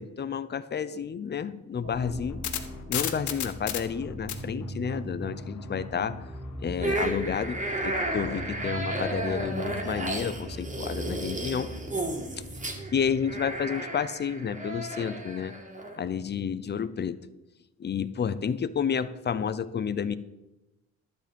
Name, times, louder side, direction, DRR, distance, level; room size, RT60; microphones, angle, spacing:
voice 1, 0.0-2.4 2.9-6.2 6.6-11.7 12.9-15.5 16.0-17.2 17.8-20.2, left 7 dB, 35° left, 14 dB, 0.6 m, -30 dB
sound 1, 1.8-13.7, right 1 dB, 65° right, 2.2 m, -40 dB
sound 2, 2.1-6.3, left 11 dB, 80° left, 1.2 m, -35 dB
sound 3, 6.8-16.0, right 1 dB, 25° right, 2.2 m, -33 dB
12.0 x 7.6 x 5.3 m, 0.99 s
cardioid pair, 115°, 29 cm